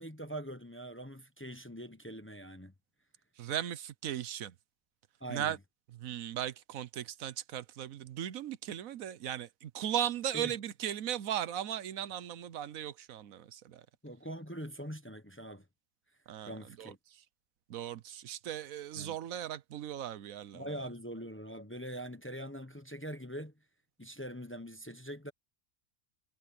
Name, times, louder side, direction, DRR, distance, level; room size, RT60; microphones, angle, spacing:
voice 1, 0.0-2.7 5.2-5.6 10.3-10.5 14.0-15.7 16.5-17.0 19.0-19.2 20.5-23.5 24.0-25.3, right 1 dB, 10° left, 0.9 m, -43 dB
voice 2, 3.4-4.5 5.3-5.6 5.9-13.9 16.3-17.2 17.7-20.8, right 10 dB, 80° right, 1.2 m, -37 dB
omnidirectional pair, 1.4 m